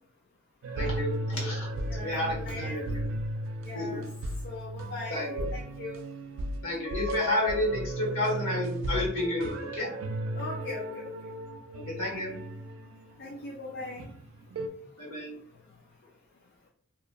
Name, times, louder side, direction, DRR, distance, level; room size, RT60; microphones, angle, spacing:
sound 1, 0.6-13.3 13.8-14.7, right 1 dB, 65° right, 0.3 m, -35 dB
voice 1, 0.7-3.0 3.7-3.9 5.1-5.5 6.6-9.9 11.7-12.4 15.0-15.3, left 1 dB, 75° left, -4 dB, 1.4 m, -31 dB
voice 2, 1.9-2.8 3.7-4.0 4.4-6.0 10.4-11.1 13.2-14.1, left 2 dB, 50° left, -2 dB, 0.3 m, -40 dB
2.9 x 2.2 x 2.3 m, 0.63 s
head